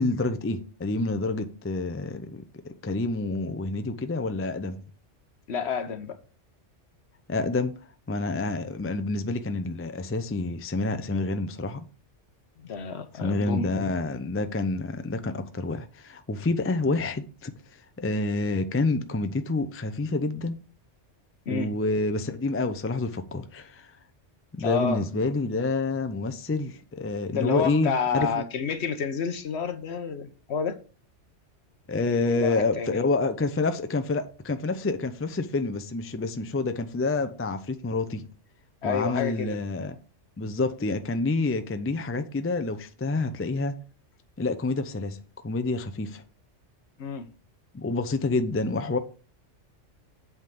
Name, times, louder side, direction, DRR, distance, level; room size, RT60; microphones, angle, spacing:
voice 1, 0.0-4.8 7.3-7.7 8.1-11.8 13.1-17.5 18.0-20.6 21.5-23.9 24.5-28.3 31.9-38.3 38.8-40.0 40.4-43.7 44.4-45.2 45.4-46.2 47.7-49.0, left 3 dB, 20° left, 0.3 m, -28 dB
voice 2, 5.5-6.2 12.6-13.9 21.5-21.7 24.6-25.0 27.3-30.8 32.3-33.0 38.8-39.6 47.0-47.3, left 6 dB, 65° left, 1.1 m, -29 dB
8.0 x 3.7 x 5.9 m
omnidirectional pair, 1.3 m